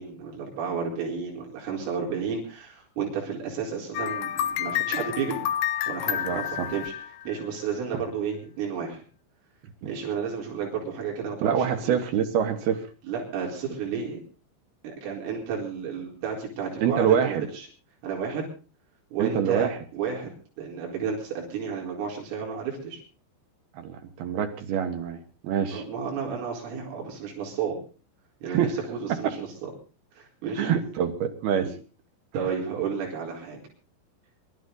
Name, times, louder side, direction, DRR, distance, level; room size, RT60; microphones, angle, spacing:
voice 1, 0.0-5.4 5.9-6.9 7.3-9.0 9.8-12.0 13.0-14.2 14.8-17.7 18.0-18.5 19.1-20.3 20.6-23.0 25.7-27.8 28.4-29.7 30.2-30.7 32.3-33.6, right 6 dB, 90° right, -1 dB, 7.0 m, -32 dB
sound 1, 4.0-7.7, left 11 dB, 80° left, 3.5 m, -29 dB
voice 2, 6.2-6.7 11.4-12.8 16.8-17.4 19.2-19.8 23.8-25.8 28.5-28.7 29.1-29.2 30.6-31.7, right 8 dB, 65° right, 7 dB, 2.8 m, -26 dB
24.5 x 13.0 x 3.9 m, 0.35 s
omnidirectional pair, 5.7 m